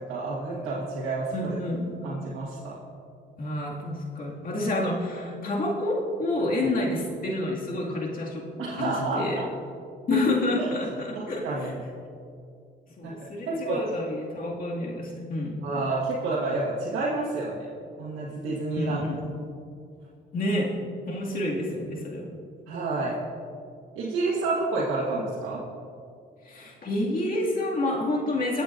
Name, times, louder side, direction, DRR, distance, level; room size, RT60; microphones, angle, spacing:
voice 1, 0.0-1.6 2.0-2.7 8.6-9.4 10.6-10.7 11.4-11.7 13.0-13.1 13.5-13.8 15.6-17.7 18.0-19.0 22.7-23.2 23.9-25.6, right 3 dB, 85° right, -7 dB, 1.6 m, -29 dB
voice 2, 1.3-1.9 3.4-9.4 10.1-11.7 13.0-15.7 18.7-19.4 20.3-20.8 21.1-22.4 26.4-28.6, left 1 dB, 45° left, -3 dB, 2.2 m, -29 dB
19.5 x 8.1 x 2.6 m, 2.4 s
cardioid pair, 90°, 20 cm